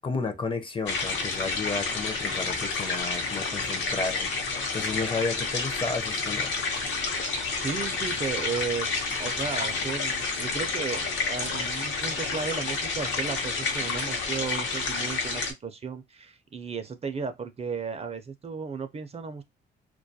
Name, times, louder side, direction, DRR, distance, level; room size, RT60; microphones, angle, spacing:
voice 1, 0.0-4.3 4.7-6.5, left 4 dB, 25° left, 0.5 m, -32 dB
sound 1, 0.9-15.5, left 4 dB, 70° left, 0.8 m, -30 dB
voice 2, 7.5-8.9 9.2-19.4, right 5 dB, 30° right, 0.4 m, -34 dB
2.2 x 2.2 x 2.6 m
cardioid pair, 90°, 20 cm